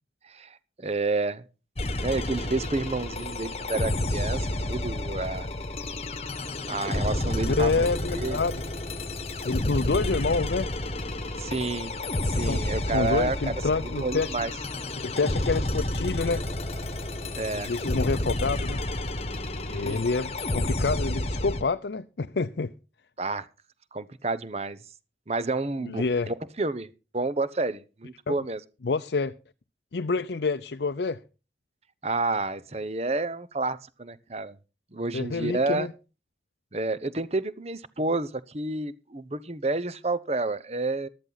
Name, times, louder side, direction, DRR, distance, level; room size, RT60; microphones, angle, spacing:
voice 1, 0.2-1.4 2.0-5.5 6.7-8.4 11.4-12.0 12.2-13.4 13.8-14.5 17.3-17.7 19.7-20.0 23.2-23.5 23.9-24.8 25.3-28.6 32.0-34.6 34.9-35.9 36.7-41.1, right 3 dB, 35° right, 0.8 m, -30 dB
sound 1, 1.8-21.6, left 1 dB, 35° left, 1.3 m, -30 dB
voice 2, 7.5-8.6 9.4-10.7 12.4-14.3 15.0-16.4 17.5-18.8 19.7-22.7 25.8-26.3 28.3-28.4 28.8-29.4 29.9-31.2 35.1-35.9, left 4 dB, 75° left, 0.6 m, -28 dB
14.5 x 12.5 x 4.0 m
head